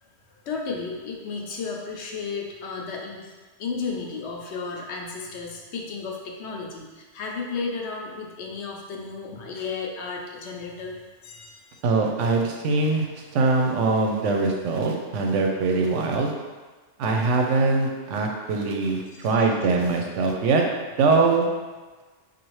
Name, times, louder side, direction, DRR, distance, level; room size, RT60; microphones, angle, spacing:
voice 1, 0.0-3.3 3.6-11.8 19.1-19.4, left 4 dB, 70° left, 0 dB, 0.8 m, -34 dB
voice 2, 11.8-13.1 13.3-16.3 17.0-20.6 21.0-21.5, right 3 dB, 90° right, 1 dB, 0.9 m, -22 dB
4.2 x 2.5 x 3.1 m, 1.3 s
omnidirectional pair, 1.2 m